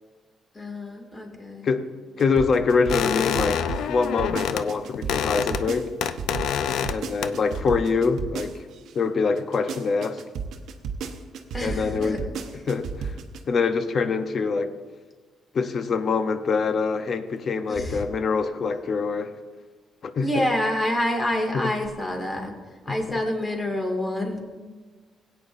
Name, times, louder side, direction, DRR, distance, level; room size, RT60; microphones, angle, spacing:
voice 1, 0.5-1.7 11.5-12.2 17.7-18.0 20.2-22.5 22.8-24.4, left 1 dB, 20° left, 2 dB, 2.2 m, -27 dB
voice 2, 2.2-3.6 3.9-5.9 6.9-8.5 8.9-10.2 11.6-12.2 12.7-13.1 13.5-14.7 15.5-19.3 20.0-20.5 21.5-21.6 22.9-23.0, left 4 dB, 50° left, 10 dB, 0.7 m, -24 dB
sound 1, 2.2-8.9 9.4-13.4, right 6 dB, 80° right, 0.9 m, -33 dB
sound 2, 2.9-4.6 4.9-5.7 6.0-7.0 7.2-7.6, left 8 dB, 80° left, 0.4 m, -27 dB
17.5 x 8.9 x 2.6 m, 1.4 s
cardioid pair, 90°, 0 cm